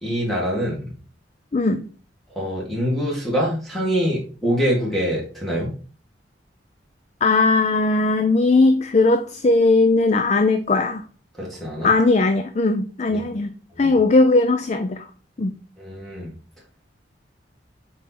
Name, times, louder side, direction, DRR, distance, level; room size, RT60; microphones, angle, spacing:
voice 1, 0.0-0.9 2.4-5.7 11.4-11.9 13.1-13.2 13.8-14.0 15.8-16.3, equal, ahead, -5 dB, 2.1 m, -24 dB
voice 2, 1.5-1.8 7.2-11.0 11.8-15.1 15.4-15.5, left 3 dB, 40° left, 9 dB, 0.4 m, -18 dB
7.0 x 4.4 x 4.2 m, 0.40 s
head